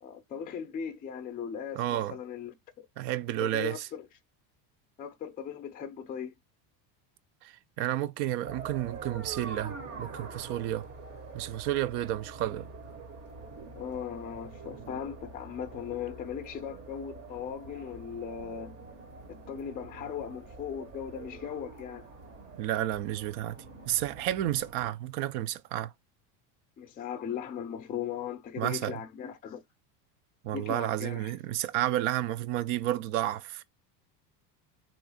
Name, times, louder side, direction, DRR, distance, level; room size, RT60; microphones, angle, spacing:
voice 1, 0.0-2.5 3.4-4.1 5.0-6.3 13.7-18.7 19.3-22.1 26.8-29.6 30.5-31.3, left 8 dB, 20° left, 0.5 m, -38 dB
voice 2, 1.8-2.1 3.0-3.9 7.4-10.9 11.3-12.7 22.6-23.6 23.9-25.9 28.6-29.0 30.4-33.6, right 13 dB, 60° right, 0.6 m, -31 dB
sound 1, 8.4-24.9, right 4 dB, 30° right, 0.8 m, -45 dB
3.5 x 3.1 x 4.8 m
cardioid pair, 145°, 46 cm